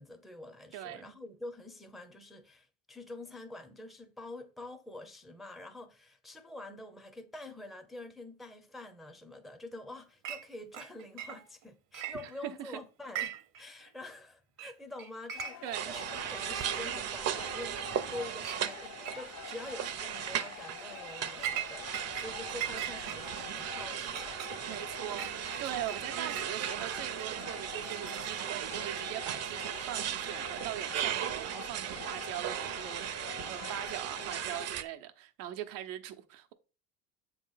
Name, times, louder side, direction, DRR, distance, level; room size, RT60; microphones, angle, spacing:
voice 1, 0.0-24.9, left 2 dB, ahead, 0.7 m, -46 dB
voice 2, 0.7-1.1 12.4-12.8 15.6-15.9 24.7-36.5, right 12 dB, 85° right, 0.9 m, -41 dB
Chink clink, 10.2-10.5 10.7-11.6 11.9-12.7 13.0-13.6 13.9-14.0 14.6-14.7 15.0-15.8 16.2-16.3 17.2-17.3 17.7-18.1 18.4-18.6 19.1-19.5 20.0-20.2 20.7-22.3 22.6-26.5 27.2-28.7, right 10 dB, 60° right, 1.0 m, -41 dB
sound 1, 15.4-34.7, left 10 dB, 45° left, 0.6 m, -47 dB
sound 2, 15.7-34.8, right 10 dB, 45° right, 0.7 m, -37 dB
7.3 x 3.2 x 5.6 m
supercardioid pair, 100°, 37 cm